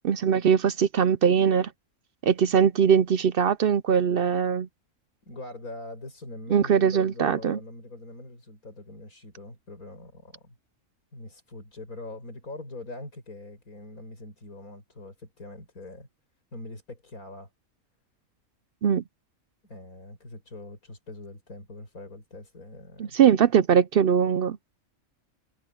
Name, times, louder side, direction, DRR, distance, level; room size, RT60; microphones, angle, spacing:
voice 1, 0.0-1.7 2.2-4.7 6.5-7.6 18.8-19.0 23.0-24.6, right 7 dB, 60° right, 0.6 m, -21 dB
voice 2, 5.2-10.6 11.1-16.1 16.5-17.5 19.6-23.2, left 2 dB, 90° left, 6.5 m, -43 dB
omnidirectional pair, 1.5 m